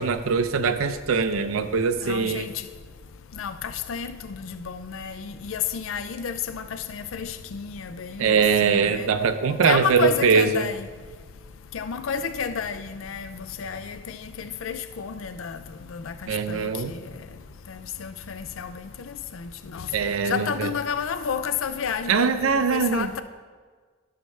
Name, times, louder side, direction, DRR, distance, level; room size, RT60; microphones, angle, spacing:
voice 1, 0.0-2.5 8.2-10.7 16.3-16.9 19.9-20.7 22.1-23.1, right 5 dB, 85° right, 9 dB, 0.5 m, -22 dB
voice 2, 2.0-2.5 3.4-9.1 9.6-10.9 11.7-15.6 15.9-17.0 17.7-19.9 20.3-23.2, left 7 dB, 80° left, 11 dB, 0.4 m, -31 dB
12.0 x 6.6 x 3.2 m, 1.5 s
head